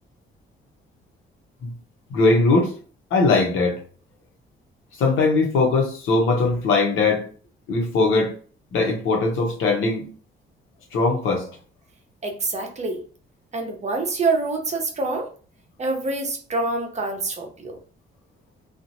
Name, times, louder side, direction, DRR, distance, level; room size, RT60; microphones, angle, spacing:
voice 1, 2.1-2.7 3.1-3.8 5.0-7.2 7.7-8.3 8.7-10.0 10.9-11.4, left 3 dB, 85° left, 1.1 m, -20 dB
voice 2, 12.2-13.0 13.5-15.3 15.8-17.8, right 3 dB, 35° right, 0.9 m, -26 dB
2.9 x 2.6 x 2.7 m
cardioid pair, 90°, 20 cm